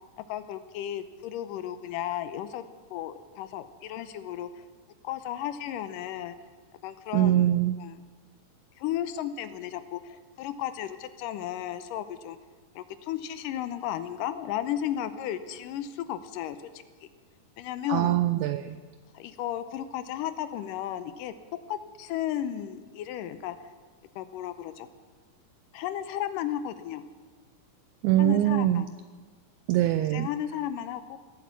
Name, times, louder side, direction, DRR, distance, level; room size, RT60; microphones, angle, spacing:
voice 1, 0.3-2.6 2.9-4.6 5.0-6.4 6.8-7.5 7.8-8.0 8.8-12.4 12.8-16.6 17.0-17.1 17.6-18.2 19.1-21.3 21.7-23.6 24.2-24.9 25.7-27.0 28.2-28.9 30.1-31.2, left 11 dB, 80° left, 12 dB, 2.3 m, -34 dB
voice 2, 7.1-7.8 17.9-18.8 28.0-28.8 29.7-30.3, right 13 dB, 85° right, 12 dB, 1.7 m, -23 dB
18.5 x 8.6 x 8.2 m, 1.5 s
omnidirectional pair, 4.0 m